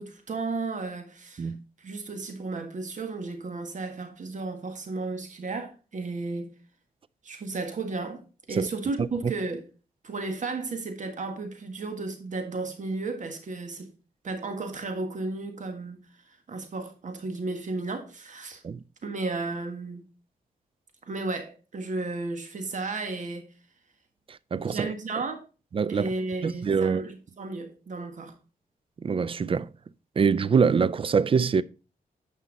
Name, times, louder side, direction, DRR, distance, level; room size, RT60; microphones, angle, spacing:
voice 1, 0.0-1.5 1.8-6.5 7.2-8.2 8.5-9.6 10.0-13.9 14.2-18.6 19.0-20.0 21.1-23.5 24.6-25.4 25.9-28.3, right 3 dB, 55° right, 1.7 m, -33 dB
voice 2, 24.5-24.9 25.7-26.1 26.4-27.0 29.0-29.7 30.2-31.6, right 6 dB, 35° right, 0.4 m, -24 dB
9.9 x 5.5 x 4.0 m
wide cardioid pair, 105°, 15 cm